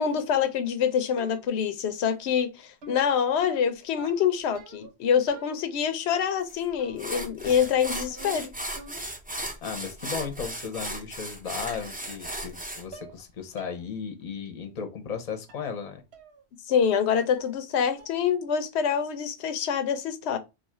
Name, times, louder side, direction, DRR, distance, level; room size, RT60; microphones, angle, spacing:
voice 1, 0.0-8.5 16.7-20.4, left 7 dB, 90° left, 0.9 m, -26 dB
sound 1, 1.2-1.7 2.8-5.0 5.3-5.9 6.8-7.2 7.5-9.3 9.6-10.0 10.9-11.0 11.5-11.9 12.2-12.6 12.9-13.2 13.6-13.8 14.2-14.3 15.5-15.7 16.1-16.4 16.7-17.1 17.3-17.7 18.0-18.3, right 3 dB, 85° right, 1.1 m, -48 dB
sound 2, 6.5-6.6 7.0-12.8, right 1 dB, 10° right, 0.4 m, -36 dB
voice 2, 9.6-16.0, left 6 dB, 45° left, 0.7 m, -35 dB
2.7 x 2.4 x 4.1 m
omnidirectional pair, 1.1 m